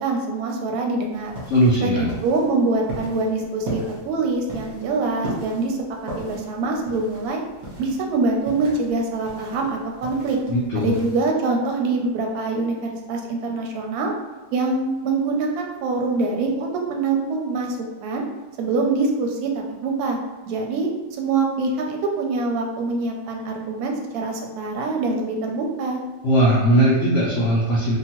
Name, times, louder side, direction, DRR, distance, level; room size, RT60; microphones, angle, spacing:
voice 1, 0.0-1.3 1.8-5.8 6.2-7.4 7.8-10.4 10.7-12.8 13.1-14.1 14.5-17.8 18.0-18.2 18.6-19.5 19.8-20.2 20.5-20.9 21.2-26.0, right 3 dB, 70° right, 1 dB, 0.9 m, -24 dB
sound 1, 1.1-11.2, right 1 dB, 35° right, 0.8 m, -37 dB
voice 2, 1.5-2.1 10.5-10.9 26.2-27.9, right 1 dB, 90° left, -5 dB, 0.6 m, -18 dB
2.8 x 2.3 x 2.8 m, 1.3 s
omnidirectional pair, 1.9 m